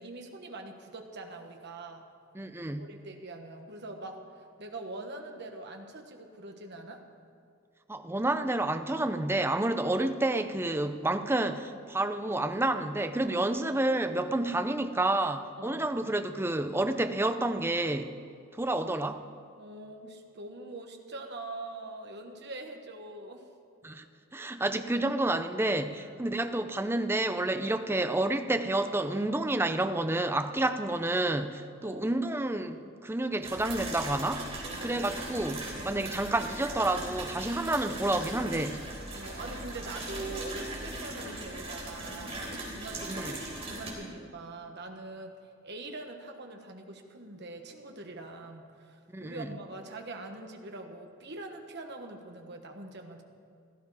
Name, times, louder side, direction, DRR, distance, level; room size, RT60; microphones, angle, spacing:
voice 1, 0.0-2.1 2.8-7.0 15.6-15.9 19.6-23.4 26.0-26.2 31.8-32.1 34.7-35.1 39.1-42.4 42.7-45.4 45.6-53.2, right 2 dB, 55° right, 4 dB, 1.4 m, -43 dB
voice 2, 2.3-2.9 7.9-18.2 18.6-19.2 23.8-24.0 24.3-38.9 43.1-43.4 49.1-49.5, right 2 dB, 10° right, 9 dB, 0.6 m, -29 dB
sound 1, 33.4-43.9, right 2 dB, 30° right, 3.6 m, -39 dB
16.0 x 13.5 x 4.9 m, 2.3 s
head